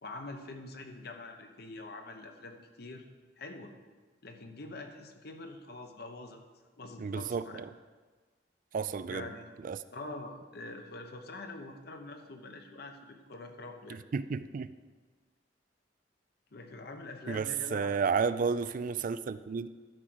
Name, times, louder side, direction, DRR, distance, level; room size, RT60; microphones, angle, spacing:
voice 1, 0.0-3.0 3.4-3.7 4.2-6.4 6.8-7.6 9.0-9.6 9.9-14.0 16.5-18.0, left 2 dB, 60° left, 5 dB, 1.0 m, -45 dB
voice 2, 7.0-7.7 8.7-9.3 9.6-9.8 14.1-14.7 17.3-19.7, right 5 dB, 50° right, 14 dB, 0.3 m, -32 dB
12.0 x 5.0 x 6.2 m, 1.4 s
head